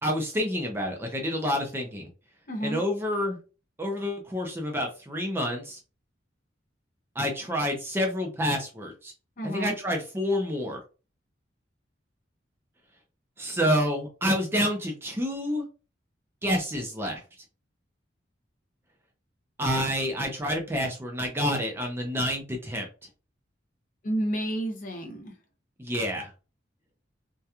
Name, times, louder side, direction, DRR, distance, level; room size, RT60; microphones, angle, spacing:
voice 1, 0.0-2.1 2.6-3.4 3.8-5.8 7.2-9.1 9.4-10.8 13.4-15.6 16.4-17.2 19.6-22.9 25.8-26.3, equal, 10° right, 0.4 m, -28 dB
voice 2, 2.5-2.8 9.4-9.8 24.0-25.3, right 1 dB, 40° left, 0.5 m, -30 dB
2.8 x 2.2 x 2.3 m
head